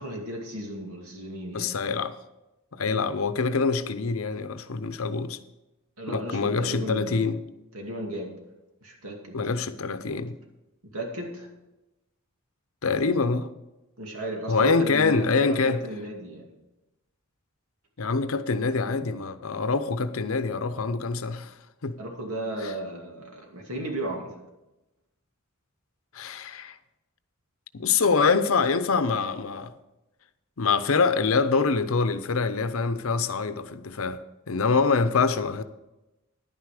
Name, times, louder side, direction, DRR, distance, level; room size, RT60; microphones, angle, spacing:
voice 1, 0.0-1.8 6.0-7.3 7.7-8.3 8.8-9.4 10.9-11.5 14.0-16.5 22.0-24.3, right 1 dB, 85° right, 2.5 m, -35 dB
voice 2, 1.5-2.1 2.7-5.4 6.1-7.4 9.3-10.3 12.8-13.5 14.5-15.8 18.0-21.6 21.8-22.0 22.6-22.7 26.1-26.8 27.7-29.7 30.6-35.6, left 4 dB, 70° left, 0.7 m, -25 dB
11.0 x 9.6 x 4.9 m
head